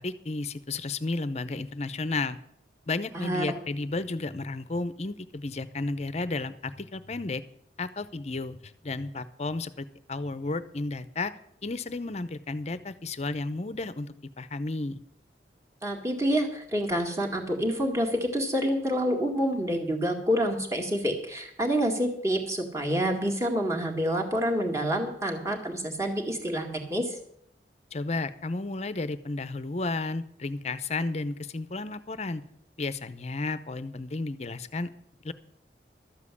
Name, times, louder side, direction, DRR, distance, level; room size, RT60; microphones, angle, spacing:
voice 1, 0.0-2.4 2.9-7.4 7.8-11.3 11.6-15.0 27.9-32.4 32.8-34.9 35.2-35.3, left 3 dB, 40° left, 14 dB, 0.7 m, -33 dB
voice 2, 3.1-3.5 15.8-27.1, equal, 15° right, 1 dB, 2.0 m, -28 dB
13.0 x 7.5 x 8.4 m, 0.70 s
head